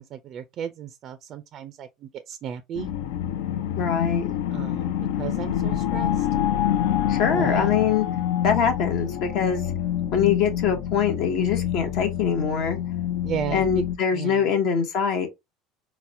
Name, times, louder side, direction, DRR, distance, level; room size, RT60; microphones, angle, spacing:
voice 1, 0.0-2.9 4.5-6.3 7.3-7.7 13.2-13.8 14.1-14.5, right 9 dB, 50° right, 0.3 m, -34 dB
sound 1, 2.7-14.0, left 10 dB, 85° left, 0.4 m, -27 dB
voice 2, 3.8-4.3 7.1-8.1 8.4-9.7 10.1-12.8 13.5-15.3, left 7 dB, 65° left, 0.8 m, -23 dB
4.0 x 2.1 x 2.6 m
supercardioid pair, 120°, 0 cm